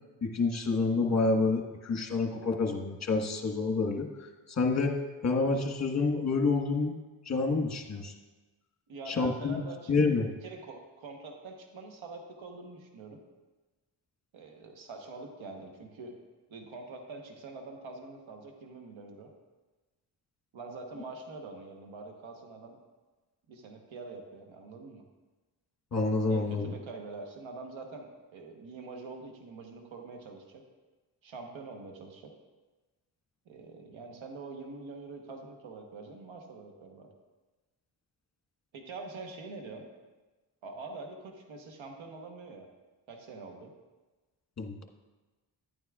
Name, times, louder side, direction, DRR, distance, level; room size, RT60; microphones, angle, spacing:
voice 1, 0.2-5.0 5.2-7.0 7.3-8.1 9.1-9.6 9.9-10.3 25.9-26.7 44.6-44.8, left 3 dB, 35° left, 2 dB, 1.4 m, -28 dB
voice 2, 8.9-13.2 14.3-16.2 16.5-19.3 20.5-22.8 23.5-25.0 26.3-30.6 31.2-32.3 33.5-37.1 38.7-39.9 40.6-42.7 43.1-43.7, right 3 dB, 80° right, 3 dB, 1.2 m, -45 dB
10.5 x 9.4 x 2.4 m, 1.2 s
cardioid pair, 50°, 47 cm